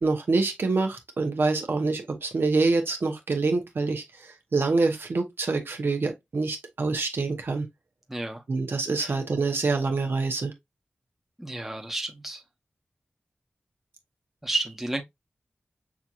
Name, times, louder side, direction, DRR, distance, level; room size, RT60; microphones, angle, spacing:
voice 1, 0.0-7.7 8.5-10.5, right 3 dB, 70° right, 0.9 m, -26 dB
voice 2, 8.1-8.4 9.0-9.1 11.4-12.4 14.4-15.0, right 2 dB, 5° right, 1.0 m, -31 dB
6.0 x 2.9 x 2.5 m
wide cardioid pair, 75°, 4 cm